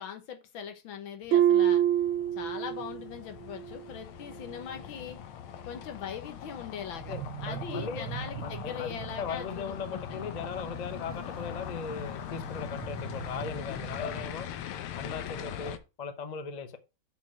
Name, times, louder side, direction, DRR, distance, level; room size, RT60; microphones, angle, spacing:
voice 1, 0.0-1.8 2.4-5.2 5.7-7.2 7.4-10.2, left 8 dB, 70° left, 1.9 m, -41 dB
sound 1, 1.3-15.8, left 11 dB, 90° left, 1.7 m, -41 dB
Harp, 1.3-3.1 3.4-3.8 4.4-4.5, right 11 dB, 80° right, 1.6 m, -25 dB
sound 2, 7.0-14.8, right 10 dB, 60° right, 1.1 m, -43 dB
voice 2, 7.1-8.0 8.4-14.5 15.0-16.8, left 5 dB, 55° left, 0.4 m, -38 dB
7.3 x 4.4 x 6.0 m
omnidirectional pair, 2.3 m